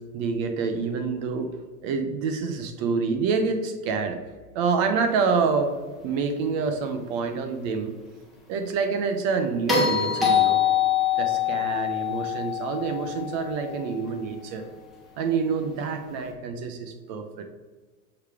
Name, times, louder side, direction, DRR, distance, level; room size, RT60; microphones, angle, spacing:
voice 1, 0.0-1.5 1.8-4.2 4.5-5.8 6.0-7.9 8.5-10.6 11.2-14.7 15.2-17.5, right 5 dB, 25° right, 7 dB, 0.4 m, -27 dB
sound 1, 9.7-14.0 16.2-16.3, left 8 dB, ahead, 1.4 m, -24 dB
6.7 x 4.8 x 3.4 m, 1.3 s
supercardioid pair, 145°, 45 cm